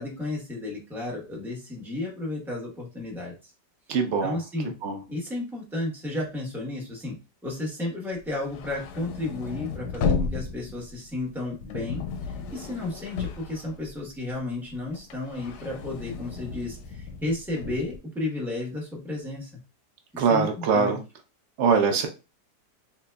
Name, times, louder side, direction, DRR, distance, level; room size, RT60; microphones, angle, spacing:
voice 1, 0.0-3.5 4.2-4.7 5.1-7.2 7.4-19.6 20.1-21.0, left 2 dB, ahead, -4 dB, 0.7 m, -33 dB
voice 2, 3.9-4.4 4.8-5.0 20.2-21.0 21.6-22.1, right 5 dB, 70° right, 5 dB, 0.6 m, -22 dB
sound 1, 8.2-14.3 14.7-18.0, left 5 dB, 75° left, 1.1 m, -33 dB
3.8 x 2.9 x 2.2 m, 0.30 s
omnidirectional pair, 1.8 m